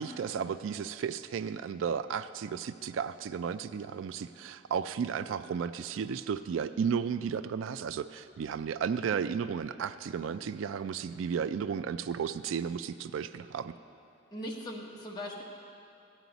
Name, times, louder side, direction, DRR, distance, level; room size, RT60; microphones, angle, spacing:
voice 1, 0.0-13.7, right 7 dB, 75° right, 13 dB, 0.3 m, -34 dB
voice 2, 14.3-15.4, equal, 20° left, -2 dB, 1.2 m, -39 dB
14.5 x 9.2 x 4.0 m, 2.7 s
head